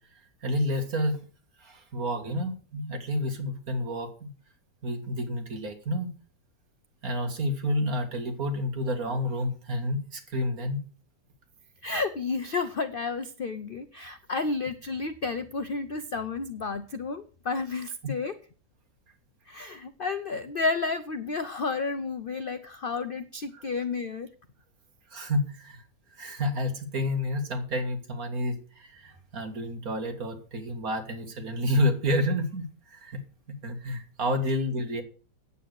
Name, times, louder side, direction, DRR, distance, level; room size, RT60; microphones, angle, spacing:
voice 1, 0.4-1.3 1.6-4.3 4.8-6.1 7.0-10.8 18.0-18.1 23.5-23.6 25.1-25.8 26.1-33.2 33.5-35.0, left 1 dB, 55° right, 5 dB, 2.2 m, -29 dB
voice 2, 11.8-18.3 19.5-24.3, left 4 dB, 65° left, 10 dB, 0.5 m, -31 dB
9.2 x 8.6 x 6.4 m, 0.38 s
omnidirectional pair, 1.9 m